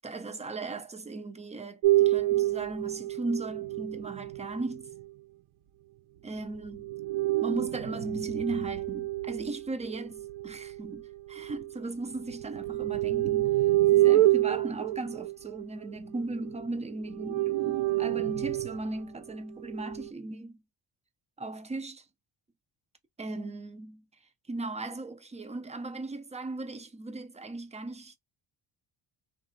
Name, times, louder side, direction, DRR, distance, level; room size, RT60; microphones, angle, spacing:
voice 1, 0.0-4.9 6.2-6.9 7.4-13.6 13.9-20.6 21.4-22.0 23.2-24.0 24.5-28.2, right 2 dB, 15° right, 0.3 m, -37 dB
sound 1, 1.8-5.0 6.7-11.8 12.2-16.7 17.1-18.9 19.6-20.1, right 16 dB, 70° right, 0.6 m, -28 dB
2.9 x 2.3 x 2.5 m
cardioid pair, 100°, 50 cm